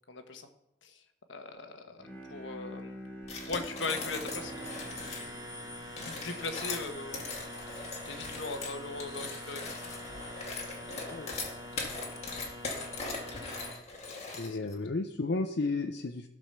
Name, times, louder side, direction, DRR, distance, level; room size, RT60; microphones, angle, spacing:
voice 1, 0.1-0.5 0.8-0.9 1.3-3.0 3.5-4.5 6.0-7.3 8.0-9.6 14.4-14.6, left 3 dB, 80° left, 6 dB, 1.3 m, -39 dB
Bowed string instrument, 1.9-6.8, right 1 dB, 10° left, 3.9 m, -47 dB
sound 1, 3.2-5.3 5.9-14.7, left 3 dB, 35° left, 2.0 m, -40 dB
sound 2, 4.0-13.7, left 1 dB, 20° right, 1.8 m, -44 dB
voice 2, 14.3-16.3, left 3 dB, 60° left, 5 dB, 0.6 m, -33 dB
15.5 x 5.2 x 6.7 m, 0.85 s
head